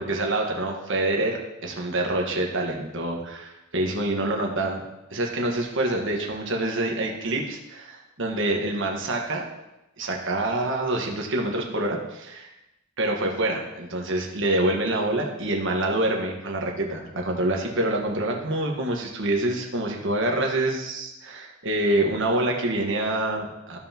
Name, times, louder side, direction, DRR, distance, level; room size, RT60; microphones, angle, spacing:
voice 1, 0.0-4.8 5.1-9.4 10.0-12.5 13.0-23.8, right 1 dB, 60° right, 1 dB, 1.5 m, -26 dB
15.0 x 5.7 x 3.0 m, 0.95 s
head